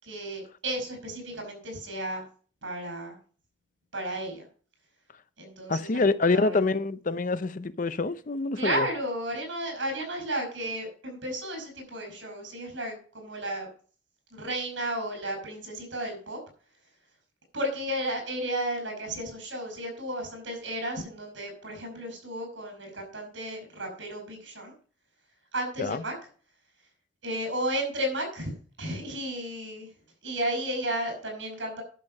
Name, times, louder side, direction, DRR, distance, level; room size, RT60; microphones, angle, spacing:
voice 1, 0.0-2.2 2.6-3.2 3.9-4.4 5.4-6.6 8.5-13.7 14.3-16.4 17.5-24.7 25.5-26.1 27.2-29.9 30.2-31.8, right 1 dB, 85° right, 5.4 m, -33 dB
voice 2, 5.7-8.9 25.8-26.0, left 3 dB, 45° left, 0.6 m, -26 dB
11.0 x 6.8 x 5.3 m
head